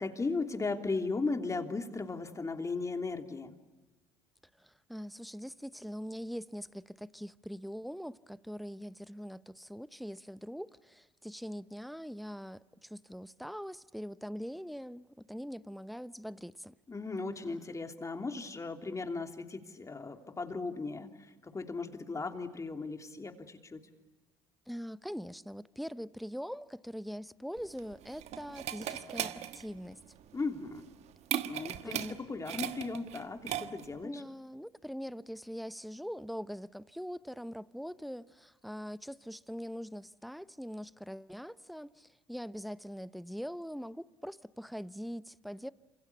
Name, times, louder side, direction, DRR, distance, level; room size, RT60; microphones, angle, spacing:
voice 1, 0.0-3.5 16.9-23.8 30.3-30.8 31.4-34.2, left 3 dB, 25° left, 3.2 m, -37 dB
voice 2, 4.6-16.7 24.7-30.0 31.8-32.2 34.0-45.7, equal, ahead, 0.9 m, -42 dB
sound 1, 27.6-34.0, right 11 dB, 55° right, 1.4 m, -38 dB
29.0 x 27.0 x 6.9 m
hypercardioid pair, 65°, 13 cm